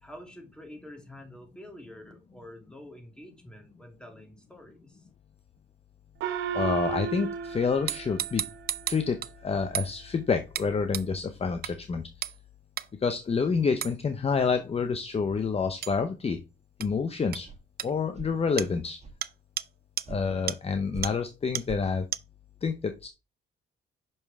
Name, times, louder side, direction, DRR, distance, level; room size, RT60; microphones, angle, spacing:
voice 1, 0.0-5.1, left 1 dB, 5° left, 2.3 m, -47 dB
Gong, 6.2-9.1, right 8 dB, 85° right, 0.9 m, -34 dB
voice 2, 6.5-8.4 8.9-12.0 13.0-16.4 16.8-17.5 17.8-19.0 20.1-22.1 22.6-23.1, left 5 dB, 30° left, 0.7 m, -28 dB
sound 1, 7.9-9.3 9.7-9.9 10.5-10.7 10.9-11.1 11.6-11.7 12.2-12.4 12.8-12.9 13.8-13.9 15.8-15.9 16.8-16.9 17.3-17.4 17.8-17.9 18.6-18.7 19.2-19.3 19.6-19.7 20.0-20.1 20.5-20.6 21.0-21.1 21.5-21.6 22.1-22.2, right 11 dB, 50° right, 0.4 m, -32 dB
sound 2, 17.4-17.6 18.1-18.4 19.0-19.2 20.1-20.2 20.9-21.1 21.7-21.8, right 3 dB, 35° right, 1.3 m, -40 dB
6.0 x 5.5 x 3.3 m
cardioid pair, 90°, 20 cm